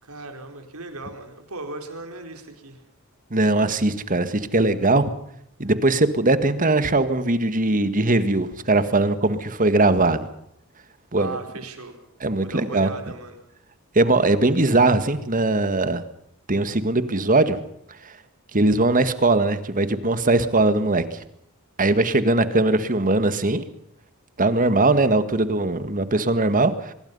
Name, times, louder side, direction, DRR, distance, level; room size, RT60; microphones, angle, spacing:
voice 1, 0.0-2.8 11.2-12.1 12.4-13.4, right 2 dB, 80° right, 6 dB, 4.6 m, -37 dB
voice 2, 3.3-5.1 5.6-10.3 11.1-11.4 12.2-12.9 14.0-16.0 16.5-17.6 18.0-18.1 18.5-21.0 21.8-23.6 24.4-26.9, right 2 dB, 40° right, 12 dB, 1.8 m, -20 dB
24.5 x 22.5 x 5.6 m, 0.75 s
head